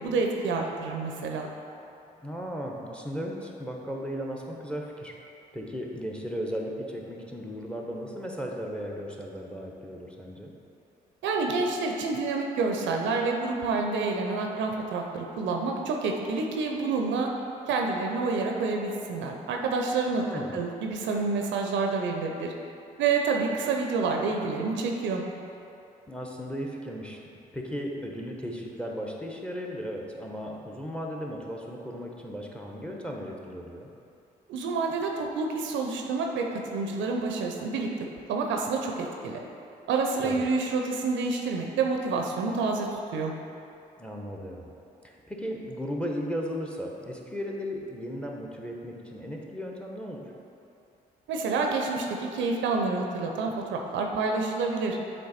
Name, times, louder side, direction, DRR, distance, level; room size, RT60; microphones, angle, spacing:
voice 1, 0.0-1.5 11.2-17.3 17.7-20.2 20.5-22.5 23.0-25.2 34.5-37.9 38.3-39.4 39.9-43.3 51.3-55.0, right 4 dB, 60° right, 2 dB, 0.6 m, -28 dB
voice 2, 2.2-5.1 5.5-10.5 20.2-20.6 26.1-27.2 27.5-33.9 40.2-40.4 44.0-44.7 45.0-50.2, equal, 5° left, 0 dB, 0.9 m, -36 dB
7.6 x 3.3 x 4.2 m, 2.7 s
hypercardioid pair, 45°, 21 cm